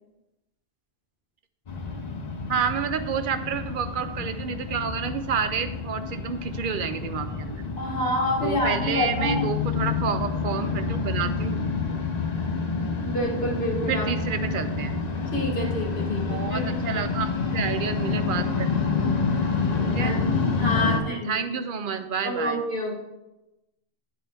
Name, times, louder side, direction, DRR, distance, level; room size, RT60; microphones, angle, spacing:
sound 1, 1.7-21.0, left 4 dB, 45° left, 0.8 m, -28 dB
voice 1, 2.5-7.6 8.4-11.6 13.9-15.0 16.3-18.7 19.9-20.2 20.7-22.6, right 7 dB, 60° right, 10 dB, 0.6 m, -29 dB
voice 2, 7.8-9.5 13.0-14.1 15.3-16.7 19.6-20.2 20.5-21.3 22.2-22.9, left 1 dB, 70° left, -2 dB, 1.8 m, -28 dB
10.0 x 4.6 x 3.4 m, 0.98 s
omnidirectional pair, 1.1 m